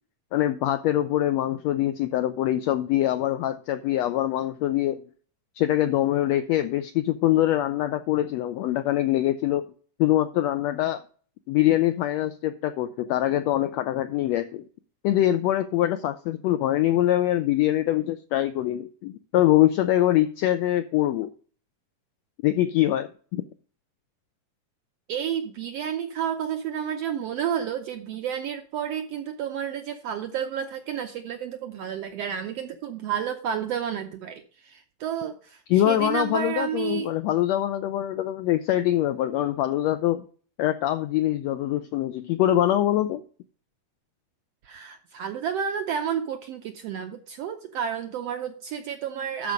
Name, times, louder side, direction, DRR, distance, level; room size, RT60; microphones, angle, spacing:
voice 1, 0.3-5.0 5.6-9.6 10.0-11.0 11.5-14.6 15.0-21.3 22.4-23.4 35.7-40.2 40.6-43.2, left 13 dB, 85° left, 10 dB, 1.5 m, -24 dB
voice 2, 25.1-37.1 44.6-49.5, right 8 dB, 75° right, 6 dB, 1.5 m, -31 dB
12.5 x 4.7 x 5.1 m, 0.43 s
omnidirectional pair, 3.6 m